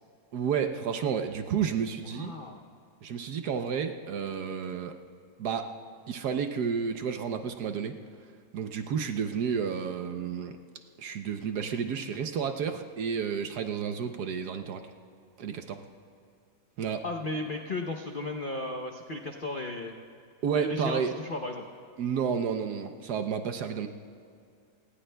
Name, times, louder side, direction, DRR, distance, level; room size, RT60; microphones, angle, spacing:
voice 1, 0.3-2.3 3.0-4.9 5.4-5.7 6.1-7.9 8.5-10.5 11.0-14.8 15.4-15.8 16.8-17.0 20.4-21.1 22.0-23.9, right 7 dB, 65° right, 7 dB, 1.1 m, -31 dB
voice 2, 2.1-2.6 17.0-20.0 20.5-21.6, left 2 dB, 70° left, 3 dB, 0.5 m, -35 dB
29.5 x 18.5 x 2.2 m, 2.3 s
omnidirectional pair, 2.1 m